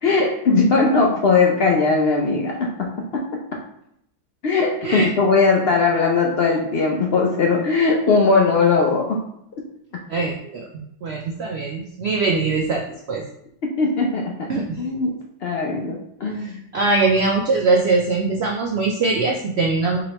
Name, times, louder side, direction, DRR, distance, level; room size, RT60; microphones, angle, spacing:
voice 1, 0.0-3.4 4.4-9.2 13.6-14.5 14.8-16.6, left 4 dB, 80° left, -1 dB, 0.5 m, -19 dB
voice 2, 10.1-10.7 11.0-13.2 14.5-14.8 16.4-16.5 16.7-20.1, right 3 dB, 75° right, 0 dB, 0.6 m, -21 dB
4.8 x 3.1 x 2.9 m, 0.75 s
omnidirectional pair, 1.7 m